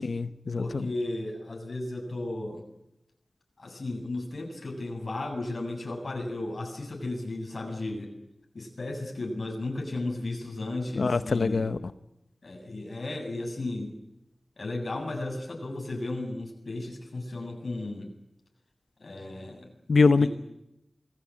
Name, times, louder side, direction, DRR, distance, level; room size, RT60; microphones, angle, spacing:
voice 1, 0.0-0.8 11.0-11.8 19.9-20.3, left 4 dB, 85° left, 11 dB, 1.0 m, -23 dB
voice 2, 0.6-2.6 3.6-8.1 8.5-11.8 12.4-13.9 14.6-18.1 19.0-19.7 20.2-20.3, left 2 dB, 70° left, 3 dB, 7.9 m, -34 dB
28.0 x 21.5 x 8.7 m, 0.89 s
wide cardioid pair, 65°, 0 cm